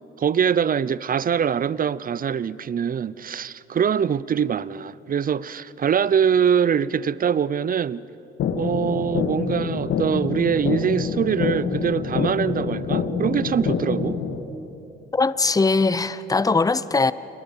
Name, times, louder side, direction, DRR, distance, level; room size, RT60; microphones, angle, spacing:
voice 1, 0.2-8.0 8.6-14.2, right 7 dB, 45° right, 0.7 m, -23 dB
sound 1, 8.4-14.4, left 6 dB, 70° left, 2.0 m, -26 dB
voice 2, 15.1-17.1, left 3 dB, 15° left, 0.7 m, -20 dB
28.5 x 23.0 x 5.6 m
supercardioid pair, 55°, 21 cm